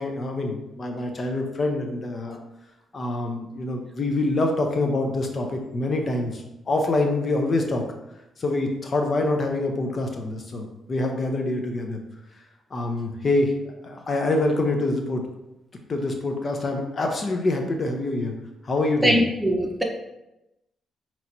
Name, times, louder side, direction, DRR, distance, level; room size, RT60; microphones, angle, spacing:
voice 1, 0.0-2.4 2.9-7.8 8.4-12.0 12.7-13.5 13.8-15.2 15.9-18.3 18.6-19.2, left 2 dB, 45° left, 3 dB, 0.6 m, -25 dB
voice 2, 19.0-19.8, equal, 15° right, 2 dB, 0.8 m, -21 dB
5.6 x 3.0 x 2.7 m, 0.91 s
cardioid pair, 70°, 0 cm